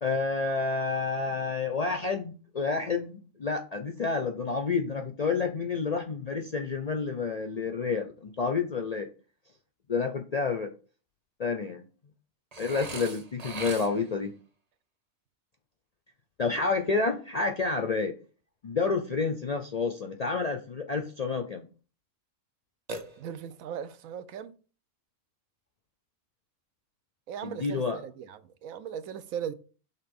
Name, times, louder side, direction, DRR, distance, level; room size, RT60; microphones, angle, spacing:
voice 1, 0.0-9.1 9.9-10.7 11.4-11.8 12.6-14.3 16.4-18.1 18.6-21.7 27.4-28.0, left 4 dB, 55° left, 0.4 m, -29 dB
Burping eructation, 12.5-14.2 22.9-23.7, right 3 dB, 35° right, 0.8 m, -40 dB
voice 2, 23.2-24.5 27.3-29.5, right 8 dB, 85° right, 1.1 m, -38 dB
5.7 x 3.7 x 5.2 m
omnidirectional pair, 1.4 m